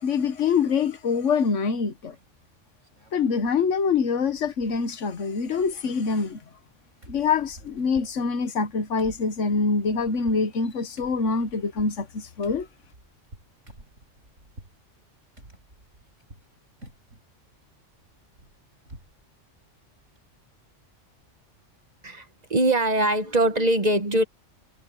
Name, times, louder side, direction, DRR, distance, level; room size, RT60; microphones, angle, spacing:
voice 1, 0.0-2.1 3.1-6.4 7.1-12.7, left 5 dB, 75° left, 1.5 m, -25 dB
sound 1, 2.1-2.4 2.8-3.6 3.9-4.0 4.3-5.1 5.4-6.7 7.0-14.8 15.4-16.5 16.8-17.3 17.6-19.2 19.5-19.6 20.0-20.2, right 1 dB, 80° right, 6.7 m, -50 dB
voice 2, 22.0-24.2, right 1 dB, 35° right, 1.2 m, -22 dB
omnidirectional pair, 1.3 m